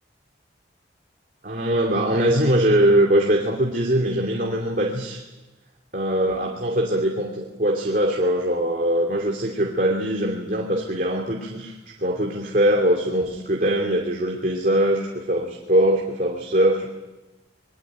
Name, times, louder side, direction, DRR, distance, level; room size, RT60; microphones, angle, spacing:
voice 1, 1.4-5.2 5.9-16.9, right 1 dB, 45° right, 0 dB, 2.7 m, -22 dB
26.5 x 21.5 x 9.0 m, 1.1 s
head